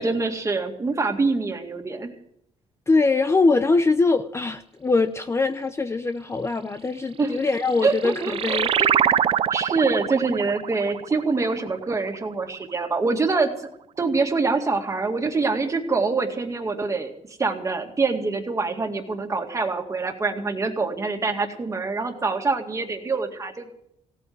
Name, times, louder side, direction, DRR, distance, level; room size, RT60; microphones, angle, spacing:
voice 1, 0.0-2.1 7.2-7.4 7.8-8.9 9.5-13.5 14.0-17.1 17.4-23.7, right 4 dB, 25° right, 4 dB, 2.1 m, -25 dB
voice 2, 2.9-8.7, left 3 dB, 20° left, 10 dB, 0.6 m, -22 dB
sound 1, 7.5-12.5, right 9 dB, 45° right, 0.5 m, -25 dB
17.0 x 8.3 x 9.4 m, 0.75 s
cardioid pair, 130°, 13 cm